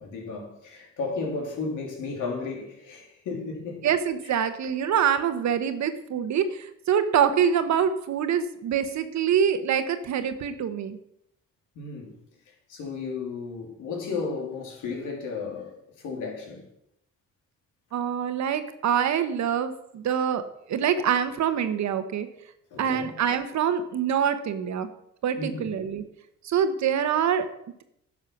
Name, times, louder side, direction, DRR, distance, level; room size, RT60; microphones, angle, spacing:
voice 1, 0.0-3.9 4.2-4.3 11.7-12.2 12.5-16.7 22.7-23.1 25.4-25.7, left 4 dB, 85° left, 3.0 m, -34 dB
voice 2, 3.8-11.0 17.9-20.4 20.7-22.3 22.8-24.9 25.2-26.0 26.4-27.5, right 8 dB, 65° right, 1.2 m, -25 dB
11.0 x 6.6 x 6.0 m
cardioid pair, 90°, 30 cm